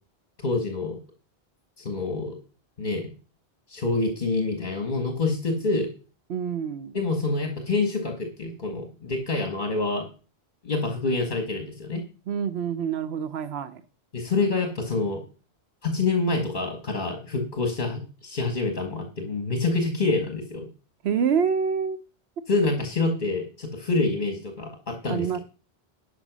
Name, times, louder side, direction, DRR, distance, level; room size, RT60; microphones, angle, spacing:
voice 1, 0.4-1.0 1.8-2.4 2.8-3.1 3.7-5.9 6.9-10.0 10.6-12.0 14.1-15.2 15.8-20.7 22.5-25.3, left 3 dB, 50° left, 1.9 m, -26 dB
voice 2, 6.3-6.9 12.3-13.8 21.0-22.0 25.1-25.4, right 7 dB, 85° right, 1.0 m, -26 dB
12.0 x 5.2 x 6.1 m
omnidirectional pair, 1.0 m